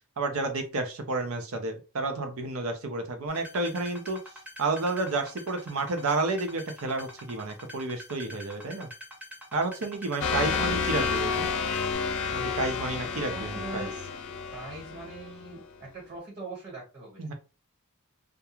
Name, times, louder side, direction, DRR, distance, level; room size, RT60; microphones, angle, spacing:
voice 1, 0.2-4.2 4.6-8.9 9.5-11.5 12.3-13.9 17.2-17.3, right 3 dB, 70° right, 6 dB, 0.6 m, -31 dB
sound 1, 3.3-11.9, left 1 dB, 5° right, 0.7 m, -45 dB
sound 2, 10.2-15.6, left 5 dB, 65° left, 0.4 m, -30 dB
voice 2, 10.4-10.8 13.3-13.9 14.5-17.2, right 3 dB, 40° right, -3 dB, 1.2 m, -41 dB
2.3 x 2.2 x 2.9 m, 0.31 s
head